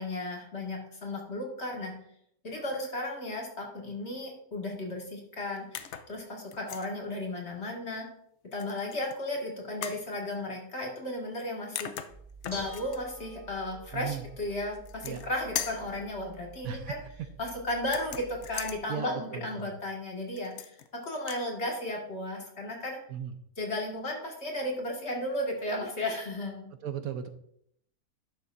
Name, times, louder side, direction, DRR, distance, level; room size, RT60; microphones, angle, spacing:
voice 1, 0.0-1.9 2.4-8.1 8.5-11.9 12.5-17.0 17.4-23.0 23.6-26.7, left 1 dB, 45° left, -1 dB, 2.0 m, -34 dB
sound 1, 5.7-6.1 6.5-6.9 8.6-9.2 9.8-10.0 11.4-11.5 11.8-13.0 14.7-15.3 15.6-15.9 17.8-18.8 20.4-20.9 21.2-21.5, left 9 dB, 65° left, 0.8 m, -39 dB
Bell / Dishes pots and pans, 12.1-18.8, right 1 dB, 10° right, 2.3 m, -48 dB
voice 2, 13.9-14.2 15.0-15.2 16.6-16.9 18.9-19.7 23.1-23.3 26.8-27.3, right 9 dB, 70° right, 9 dB, 1.1 m, -36 dB
11.5 x 6.8 x 2.5 m, 0.70 s
omnidirectional pair, 1.6 m